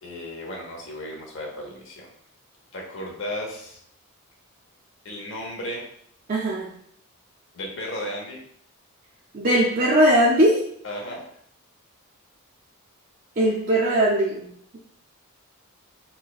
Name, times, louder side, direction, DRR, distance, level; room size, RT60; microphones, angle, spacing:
voice 1, 0.0-2.1 2.7-3.8 5.0-5.8 7.5-8.4 10.8-11.2, left 1 dB, 55° left, -1 dB, 0.8 m, -34 dB
voice 2, 6.3-6.7 9.3-10.6 13.4-14.5, right 1 dB, 40° right, -5 dB, 0.4 m, -19 dB
4.6 x 2.1 x 2.3 m, 0.67 s
head